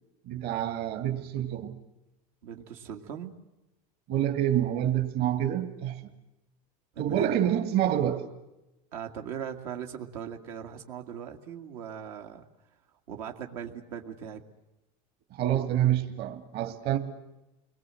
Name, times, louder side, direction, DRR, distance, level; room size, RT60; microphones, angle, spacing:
voice 1, 0.2-1.8 4.1-6.0 7.0-8.2 15.3-17.0, right 11 dB, 55° right, 7 dB, 2.5 m, -27 dB
voice 2, 2.4-3.3 6.9-7.3 8.9-12.4 13.1-14.4, right 8 dB, 85° right, 3 dB, 2.5 m, -39 dB
29.0 x 21.5 x 7.9 m, 0.95 s
supercardioid pair, 110°, 19 cm